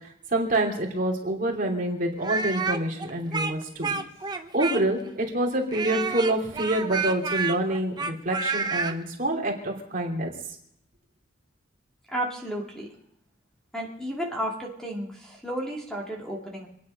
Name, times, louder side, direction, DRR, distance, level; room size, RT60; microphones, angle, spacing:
voice 1, 0.3-3.9 4.5-10.3, right 1 dB, 45° right, -1 dB, 2.9 m, -27 dB
Speech, 2.2-5.1 5.7-9.0, right 4 dB, 20° right, 0.8 m, -29 dB
voice 2, 12.1-12.9 13.7-16.7, right 1 dB, 5° left, -1 dB, 2.3 m, -32 dB
26.5 x 9.8 x 5.4 m, 0.76 s
head